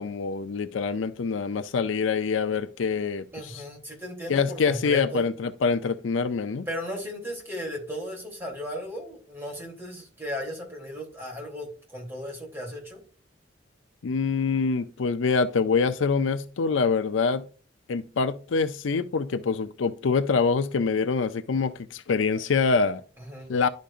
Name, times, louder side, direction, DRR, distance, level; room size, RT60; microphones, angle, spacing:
voice 1, 0.0-3.6 4.3-6.7 14.0-17.4 17.9-23.0 23.5-23.7, left 5 dB, 80° left, 0.5 m, -25 dB
voice 2, 3.3-5.3 6.7-13.0 23.2-23.6, equal, 10° right, 3.0 m, -36 dB
11.0 x 5.2 x 2.5 m
head